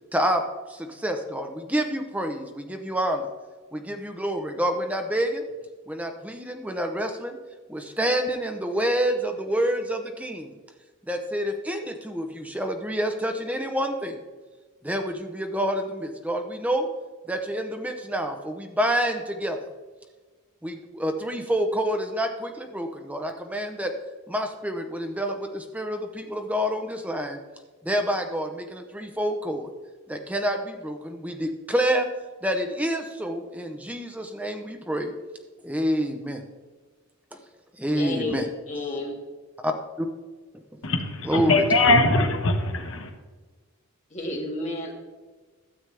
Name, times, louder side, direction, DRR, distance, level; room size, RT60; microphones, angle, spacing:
voice 1, 0.1-0.4 0.7-3.3 3.7-5.4 5.9-7.4 7.7-10.6 11.1-14.2 14.8-16.9 17.3-19.6 20.6-23.9 24.3-27.4 27.8-29.7 30.1-32.1 32.4-35.1 35.6-36.4 37.8-38.5 39.6-40.1 41.3-41.6, equal, 5° right, 4 dB, 0.7 m, -28 dB
voice 2, 38.0-38.4 38.7-39.2 44.1-44.9, left 2 dB, 35° left, -2 dB, 2.1 m, -31 dB
voice 3, 40.8-43.1, left 2 dB, 65° left, 5 dB, 1.2 m, -21 dB
12.5 x 8.0 x 3.4 m, 1.3 s
head